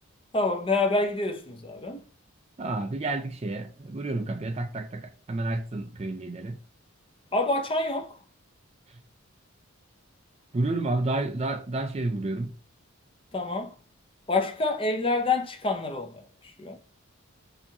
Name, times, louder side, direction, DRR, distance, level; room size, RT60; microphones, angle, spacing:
voice 1, 0.3-2.0 7.3-8.2 13.3-13.7 14.3-16.8, left 3 dB, 25° left, 0.6 m, -27 dB
voice 2, 2.6-6.6 8.9-9.0 10.5-12.5, right 2 dB, 30° right, 0.4 m, -30 dB
6.7 x 2.9 x 2.8 m
head